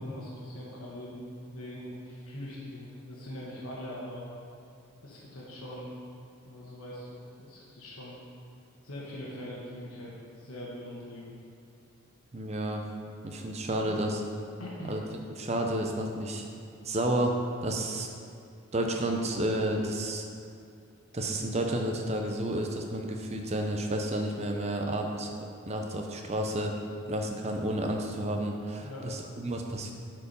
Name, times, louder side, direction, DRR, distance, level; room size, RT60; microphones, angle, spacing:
voice 1, 0.0-4.3 5.0-5.9 6.4-8.2 8.8-11.3 14.6-15.0 28.8-29.1, left 1 dB, 80° left, -5 dB, 1.3 m, -42 dB
voice 2, 12.3-12.9 13.2-14.2 14.9-15.0 15.4-16.4 16.8-18.1 18.7-20.2 21.1-25.3 25.7-26.7 27.1-29.9, right 1 dB, 30° right, 2 dB, 0.7 m, -31 dB
8.7 x 4.7 x 5.3 m, 2.4 s
head